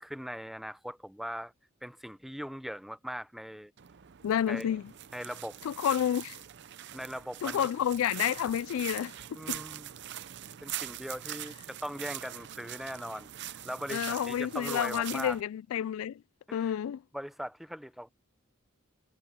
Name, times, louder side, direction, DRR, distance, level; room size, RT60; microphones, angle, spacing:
voice 1, 0.0-1.5 1.8-3.7 4.5-4.7 5.1-5.6 6.9-7.7 9.3-9.9 10.6-15.4 16.5-16.8 17.1-18.1, equal, ahead, 0.5 m, -40 dB
sound 1, 3.8-15.4, right 12 dB, 55° right, 0.5 m, -42 dB
voice 2, 4.2-4.8 5.6-6.4 7.4-9.1 9.5-9.6 13.9-16.2 16.5-17.0, left 9 dB, 75° left, 0.3 m, -30 dB
head